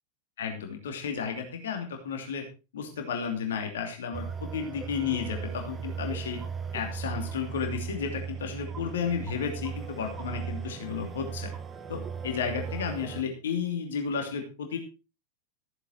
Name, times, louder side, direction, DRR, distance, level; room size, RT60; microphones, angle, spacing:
voice 1, 0.4-2.4 2.7-6.4 6.7-11.5 11.9-14.8, left 6 dB, 60° left, 4 dB, 2.8 m, -33 dB
sound 1, 4.1-13.2, right 6 dB, 20° right, 1.4 m, -37 dB
14.5 x 9.9 x 4.5 m, 0.31 s
figure-of-eight pair, 90°, 0 cm